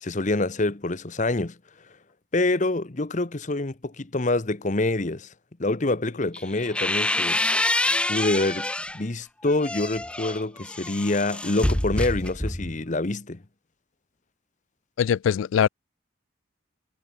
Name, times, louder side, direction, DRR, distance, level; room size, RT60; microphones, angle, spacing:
voice 1, 0.0-1.6 2.3-5.3 5.6-7.4 8.1-13.4, left 2 dB, 40° left, 1.0 m, -26 dB
sound 1, 6.3-9.0 9.5-12.8, left 1 dB, 5° left, 0.5 m, -27 dB
voice 2, 15.0-15.7, left 8 dB, 75° left, 0.3 m, -21 dB
head